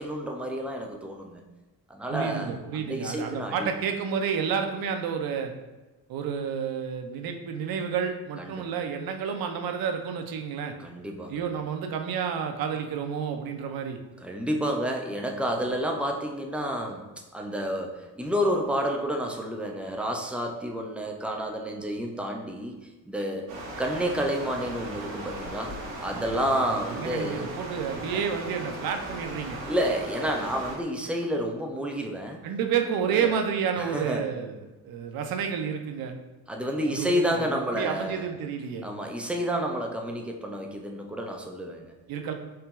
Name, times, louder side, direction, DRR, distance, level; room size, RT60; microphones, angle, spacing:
voice 1, 0.0-1.4 1.9-2.5 2.8-3.7 8.4-8.6 10.8-11.4 14.2-17.0 17.3-22.7 23.0-23.5 23.8-25.7 26.0-27.5 28.1-28.2 29.7-32.4 33.1-33.3 33.8-34.3 36.5-38.3 38.8-41.9, equal, 5° right, 2 dB, 0.4 m, -30 dB
voice 2, 2.1-5.5 6.1-10.7 11.3-14.0 26.1-29.6 32.4-36.2 36.9-38.9 42.1-42.3, right 7 dB, 50° right, 5 dB, 0.6 m, -30 dB
Stream, 23.5-30.8, right 1 dB, 80° right, 1.0 m, -38 dB
4.5 x 2.8 x 2.3 m, 1.1 s
hypercardioid pair, 45°, 48 cm